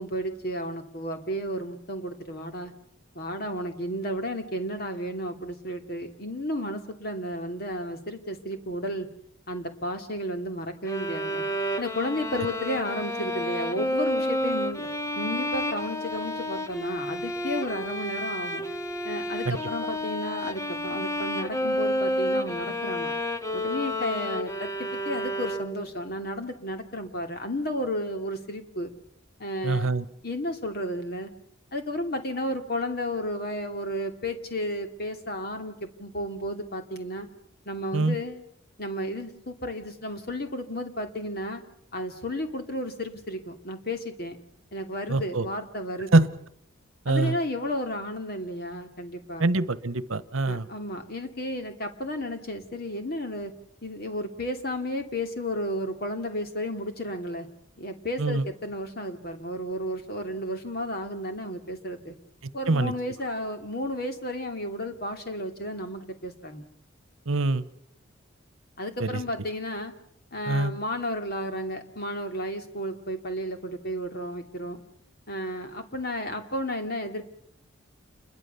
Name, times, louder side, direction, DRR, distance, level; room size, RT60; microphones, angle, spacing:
voice 1, 0.0-2.7 3.1-9.1 9.5-11.4 11.8-14.9 15.2-18.6 19.0-23.1 23.5-28.9 29.4-29.9 30.2-31.3 31.7-37.3 37.7-38.4 38.8-41.6 41.9-44.4 44.7-46.3 47.1-49.5 50.5-53.5 53.8-57.5 57.8-62.2 62.5-66.6 68.8-69.9 70.3-74.8 75.3-77.3, equal, 45° left, 6 dB, 2.7 m, -33 dB
sound 1, 10.9-26.0, left 1 dB, 15° left, 1.0 m, -30 dB
voice 2, 29.6-30.0 37.9-38.2 45.1-45.5 46.1-46.3 47.0-47.4 49.4-50.6 58.2-58.4 62.7-62.9 67.3-67.6 69.0-69.2 70.5-70.7, right 2 dB, 75° right, 17 dB, 1.1 m, -24 dB
28.5 x 22.0 x 6.9 m, 0.69 s
head